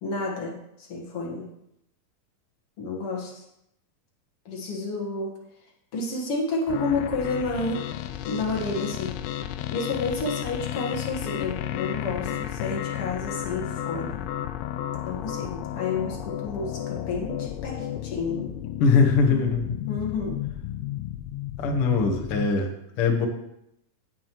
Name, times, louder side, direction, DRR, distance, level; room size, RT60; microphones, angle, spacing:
voice 1, 0.0-1.5 2.8-3.4 4.5-5.3 5.9-7.8 8.3-9.2 9.7-14.2 15.0-18.5 19.9-20.4, left 3 dB, 50° left, -1 dB, 1.9 m, -30 dB
sound 1, 6.7-22.5, left 11 dB, 90° left, 2.4 m, -33 dB
voice 2, 18.8-19.6 21.6-22.7 23.0-23.3, left 4 dB, 65° left, 2 dB, 1.3 m, -21 dB
16.0 x 7.4 x 3.1 m, 0.79 s
omnidirectional pair, 4.2 m